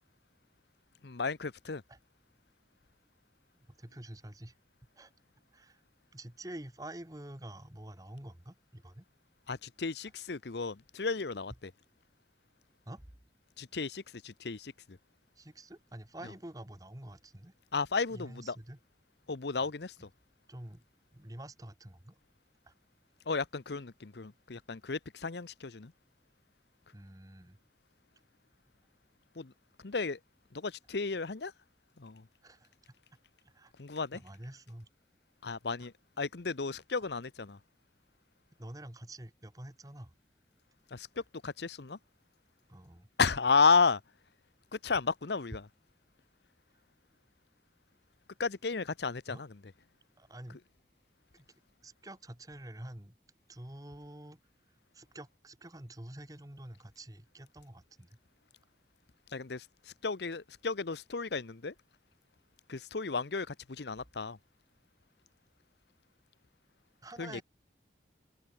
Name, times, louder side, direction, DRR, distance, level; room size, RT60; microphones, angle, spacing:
voice 1, 1.0-1.8 9.5-11.7 13.6-15.0 17.7-18.6 19.3-20.1 23.3-25.9 29.4-29.5 29.8-30.2 30.5-31.5 32.0-32.2 33.8-34.2 35.4-37.6 40.9-42.0 43.2-44.0 44.7-45.6 48.4-49.5 59.3-61.7 62.7-64.4 67.2-67.4, left 4 dB, 70° left, 0.9 m, -33 dB
voice 2, 3.8-4.5 5.0-5.1 5.5-5.8 6.1-9.0 12.8-13.0 15.4-17.5 18.1-18.8 20.5-20.8 21.1-22.2 22.6-22.7 26.9-27.6 32.4-32.7 33.4-33.7 34.1-34.9 35.8-35.9 37.0-37.1 38.6-40.1 42.7-43.1 49.3-49.4 50.2-50.6 51.3-51.4 51.8-53.1 53.5-54.4 54.9-58.2 67.0-67.4, right 1 dB, 20° right, 1.6 m, -47 dB
head